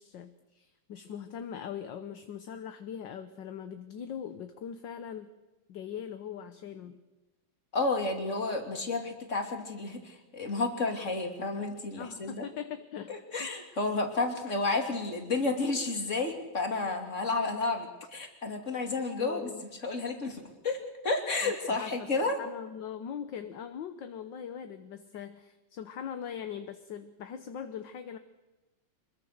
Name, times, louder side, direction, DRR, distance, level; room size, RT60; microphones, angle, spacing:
voice 1, 0.0-5.3 5.7-7.0 12.0-13.5 19.2-19.6 21.4-22.1 22.4-28.2, left 8 dB, 65° left, 9 dB, 1.6 m, -41 dB
voice 2, 7.7-12.4 13.1-19.5 19.8-20.8 21.0-22.4, left 3 dB, 35° left, 4 dB, 3.1 m, -31 dB
25.5 x 21.5 x 6.7 m, 1.1 s
omnidirectional pair, 2.3 m